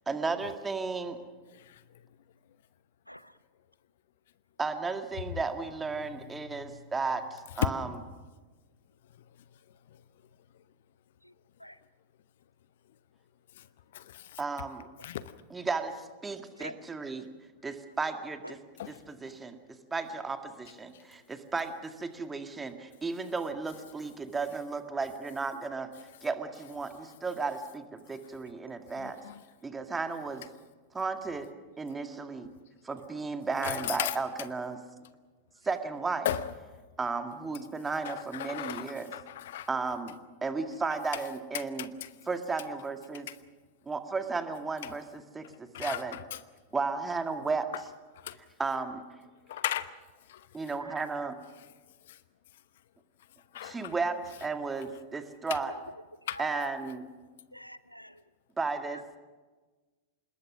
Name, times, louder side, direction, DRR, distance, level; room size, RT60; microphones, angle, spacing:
voice 1, 0.1-1.2 4.6-8.0 14.4-14.9 15.5-17.3 17.6-18.6 18.9-19.6 19.9-25.9 26.2-29.2 29.6-30.4 30.9-31.5 31.8-32.5 32.8-34.8 35.6-36.3 37.0-39.1 39.7-41.9 42.3-43.3 43.9-46.2 46.7-47.7 48.6-49.0 50.5-51.4 53.6-55.7 56.4-57.1 58.6-59.0, right 4 dB, 15° right, 1.9 m, -34 dB
voice 2, 3.1-3.4 11.2-11.3 11.6-11.8 16.5-16.8 18.4-18.6 38.7-38.8 39.1-39.2 50.8-51.0 55.6-55.8 56.2-56.8 57.5-58.2 58.9-59.0, equal, 90° left, 0.6 m, -45 dB
voice 3, 13.9-14.4 15.0-15.2 18.8-18.9 19.2-19.3 29.0-29.4 32.4-32.5 33.6-34.2 36.2-36.4 38.0-39.7 41.5-42.1 45.7-46.0 48.2-48.4 49.5-49.9 50.3-50.4 53.5-53.9 56.3-56.4, left 12 dB, 55° left, 0.9 m, -36 dB
26.5 x 21.0 x 6.1 m
figure-of-eight pair, 90°, 0 cm